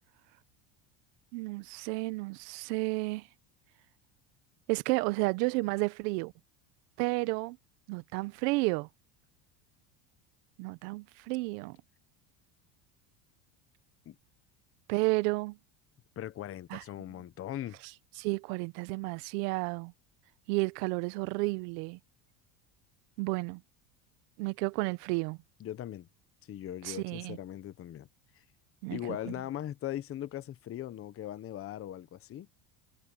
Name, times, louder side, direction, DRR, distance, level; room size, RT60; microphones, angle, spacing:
voice 1, 1.3-3.3 4.7-6.3 7.0-7.6 7.9-8.9 10.6-11.8 14.9-15.6 16.7-16.8 18.2-19.9 20.5-22.0 23.2-23.6 24.4-25.4 26.8-27.4 28.8-29.0 29.3-29.4, right 24 dB, 85° right, 0.9 m, -31 dB
voice 2, 16.2-17.8 25.6-26.1 26.5-28.1 28.3-28.4 28.9-32.5, left 12 dB, 30° left, 0.8 m, -39 dB
cardioid pair, 135°, 47 cm